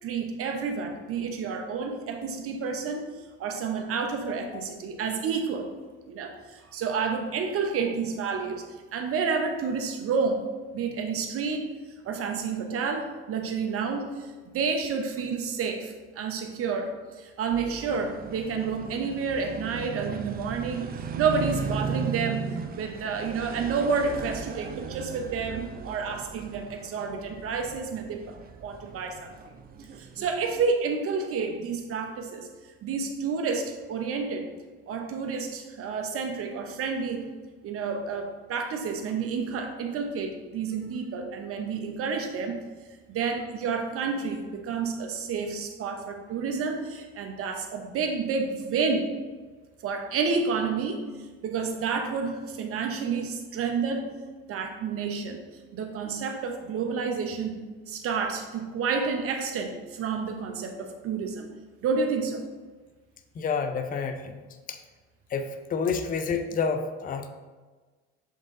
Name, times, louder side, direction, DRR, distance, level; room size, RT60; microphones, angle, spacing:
voice 1, 0.0-3.0 3.4-5.7 6.1-8.6 8.9-10.4 10.7-11.7 12.0-16.9 17.2-20.9 21.2-28.3 28.6-29.3 30.0-32.5 32.8-34.5 34.9-37.2 37.6-42.6 43.1-49.1 49.8-51.0 51.4-54.1 54.5-55.4 55.7-57.6 57.9-61.5 61.8-62.4, right 5 dB, 50° right, 5 dB, 0.9 m, -30 dB
sound 1, 17.5-30.7, right 6 dB, 30° right, 0.5 m, -37 dB
voice 2, 63.4-64.4 64.7-64.8 65.3-67.3, left 5 dB, 30° left, 7 dB, 0.5 m, -29 dB
7.2 x 3.7 x 3.7 m, 1.3 s
supercardioid pair, 80°, 30 cm